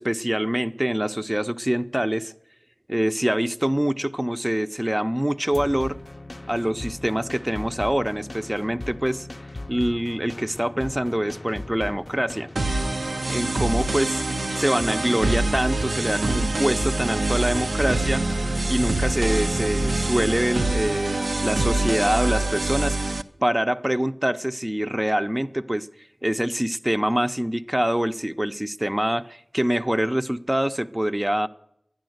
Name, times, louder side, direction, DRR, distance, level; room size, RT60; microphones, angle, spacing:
voice 1, 0.0-2.3 2.9-6.0 6.5-9.3 9.7-12.5 13.3-18.2 18.7-25.9 26.2-31.5, right 1 dB, 15° right, 0.6 m, -25 dB
sound 1, 5.5-20.4, left 2 dB, 45° left, 0.5 m, -38 dB
sound 2, 12.6-23.2, right 2 dB, 80° right, 0.6 m, -25 dB
12.0 x 9.9 x 7.8 m
wide cardioid pair, 45°, 0 cm